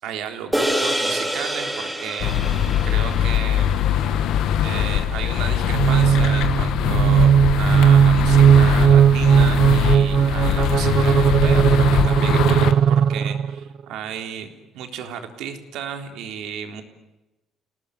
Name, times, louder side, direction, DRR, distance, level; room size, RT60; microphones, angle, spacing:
voice 1, 0.0-3.8 4.6-14.5 14.7-16.8, right 8 dB, 80° right, 6 dB, 3.8 m, -33 dB
sound 1, 0.5-5.1, right 1 dB, 5° right, 3.1 m, -28 dB
sound 2, 2.2-12.7, left 9 dB, 75° left, 1.9 m, -22 dB
sound 3, 5.7-13.6, right 8 dB, 45° right, 0.9 m, -16 dB
30.0 x 18.5 x 9.5 m, 1.0 s
cardioid pair, 160°, 0 cm